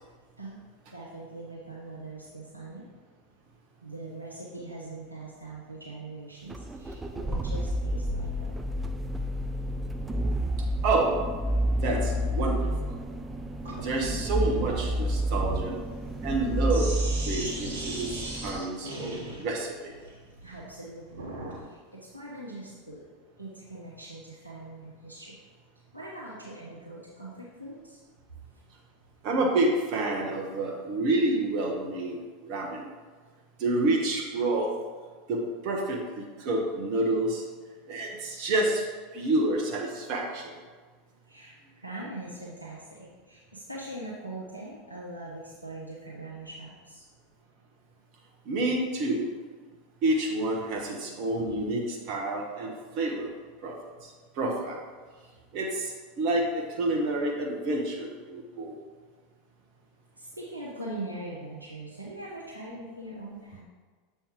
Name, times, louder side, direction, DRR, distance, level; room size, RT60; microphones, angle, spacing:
voice 1, 0.9-2.8 3.8-8.6 18.2-18.4 18.9-19.3 20.4-23.0 23.4-25.4 25.9-28.0 28.5-28.6 41.3-47.1 60.1-63.6, right 2 dB, 90° right, -6 dB, 0.8 m, -42 dB
sound 1, 6.5-18.6, equal, 15° right, 0.4 m, -30 dB
voice 2, 11.8-13.0 13.8-15.8 16.2-16.9 17.3-19.9 29.2-32.2 32.4-32.9 33.6-34.7 35.3-37.5 37.9-38.9 39.1-40.5 48.5-49.3 50.0-53.3 53.6-53.7 54.0-54.8 55.5-58.7, right 2 dB, 50° right, -1 dB, 1.0 m, -28 dB
Sink (filling or washing), 13.6-21.6, right 2 dB, 65° right, 1.3 m, -40 dB
7.0 x 4.2 x 3.6 m, 1.4 s
figure-of-eight pair, 85°, 0 cm